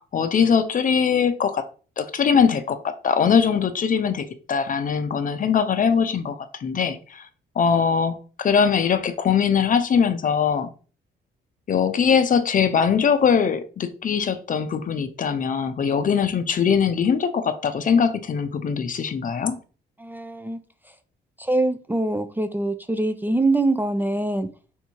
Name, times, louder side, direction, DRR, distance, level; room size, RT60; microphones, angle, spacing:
voice 1, 0.0-1.7 2.0-7.3 7.6-10.7 11.7-19.6, left 6 dB, 45° left, 0.6 m, -21 dB
voice 2, 20.0-20.6 21.4-24.5, right 2 dB, 10° right, 0.4 m, -24 dB
3.6 x 2.7 x 4.4 m
cardioid pair, 90°, 20 cm